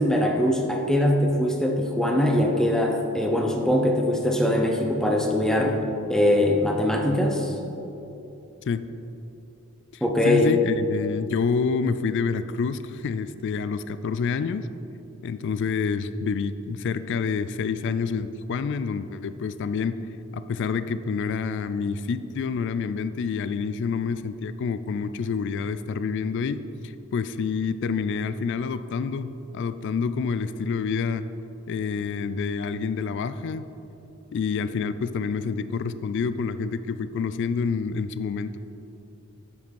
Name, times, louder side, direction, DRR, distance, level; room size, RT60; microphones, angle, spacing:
voice 1, 0.0-5.8 6.1-7.5 10.0-10.5, left 1 dB, 5° left, 1 dB, 0.7 m, -22 dB
voice 2, 9.9-14.7 15.2-20.0 20.3-31.3 31.7-33.6 34.3-38.6, left 5 dB, 55° left, 13 dB, 0.3 m, -28 dB
8.3 x 7.5 x 4.6 m, 2.9 s
head